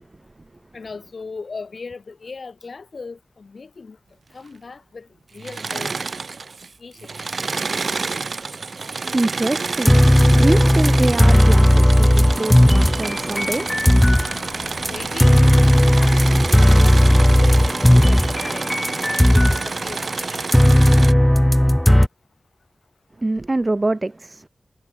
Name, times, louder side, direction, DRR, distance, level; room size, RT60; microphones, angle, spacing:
voice 1, 0.7-4.0 4.3-6.0 6.8-7.2 14.8-16.2 16.8-20.7, left 4 dB, 65° left, 2.9 m, -38 dB
Engine / Mechanisms, 5.4-6.7 7.0-21.1, right 4 dB, 65° right, 0.6 m, -28 dB
voice 2, 9.1-10.0 10.4-13.8 14.1-14.3 23.2-24.5, right 2 dB, 30° right, 0.9 m, -24 dB
sound 1, 9.8-14.3 14.7-19.7 20.0-22.1, equal, 10° left, 0.5 m, -15 dB
sound 2, 12.5-18.2, left 5 dB, 85° left, 1.8 m, -41 dB
wide cardioid pair, 85°, 0 cm